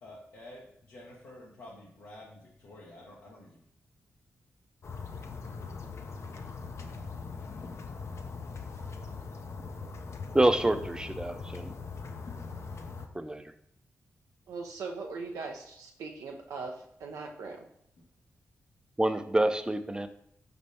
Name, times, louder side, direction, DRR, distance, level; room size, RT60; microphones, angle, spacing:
voice 1, 0.0-3.6, left 1 dB, 85° left, -6 dB, 0.8 m, -49 dB
sound 1, 4.8-13.1, left 4 dB, 55° left, 0.5 m, -41 dB
voice 2, 10.3-11.7 13.1-13.4 19.0-20.1, right 1 dB, 15° right, 10 dB, 0.4 m, -27 dB
voice 3, 14.5-17.6, right 4 dB, 85° right, 1 dB, 0.4 m, -40 dB
5.0 x 3.4 x 2.7 m, 0.70 s
supercardioid pair, 45°, 6 cm